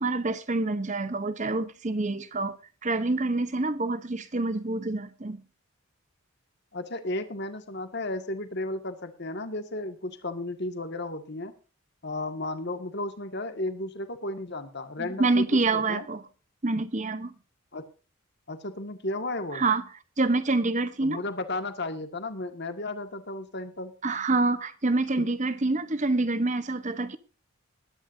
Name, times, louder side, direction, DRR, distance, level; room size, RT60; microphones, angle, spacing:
voice 1, 0.0-2.6 2.8-5.4 15.0-16.2 16.6-17.3 19.5-19.8 20.2-21.2 24.0-27.2, right 3 dB, 35° right, 0.8 m, -27 dB
voice 2, 6.7-11.5 12.0-16.1 17.7-17.9 18.5-19.6 21.0-23.9 25.2-25.3 25.8-25.9, left 2 dB, 50° left, 1.9 m, -34 dB
20.5 x 11.5 x 2.7 m
head